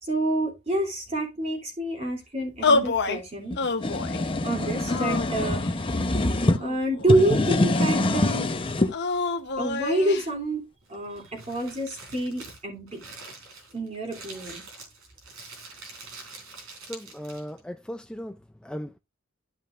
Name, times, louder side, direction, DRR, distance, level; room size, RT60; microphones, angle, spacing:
voice 1, 0.0-3.6 4.4-5.6 6.6-8.5 9.6-10.6 10.9-13.0 13.7-14.6, right 1 dB, 30° right, 3.0 m, -27 dB
sound 1, 2.6-3.2 3.6-4.2 4.9-5.8 6.5-7.5 8.9-10.3, left 3 dB, 55° left, 0.9 m, -27 dB
sound 2, 3.5-6.6 7.0-8.9, left 2 dB, 25° left, 0.7 m, -24 dB
Crumpling crinkling, 10.8-17.6, right 3 dB, 80° right, 3.6 m, -45 dB
voice 2, 16.8-19.0, equal, 5° left, 0.3 m, -37 dB
12.5 x 5.5 x 2.5 m
head